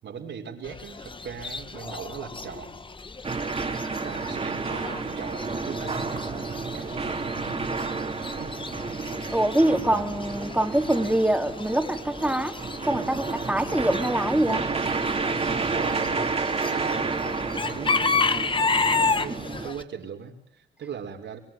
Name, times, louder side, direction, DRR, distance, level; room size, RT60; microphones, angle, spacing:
voice 1, 0.0-2.8 4.0-8.6 9.7-10.3 15.4-17.2 17.7-21.4, right 7 dB, 65° right, 3 dB, 5.5 m, -40 dB
Chicken rooster / Bird, 0.6-19.8, left 4 dB, 25° left, 1.6 m, -32 dB
sound 1, 3.2-19.7, right 4 dB, 30° right, 3.5 m, -31 dB
voice 2, 9.3-12.6 12.8-14.7, right 1 dB, 5° right, 5 dB, 3.3 m, -24 dB
24.5 x 23.0 x 9.4 m, 0.71 s
cardioid pair, 90°, 20 cm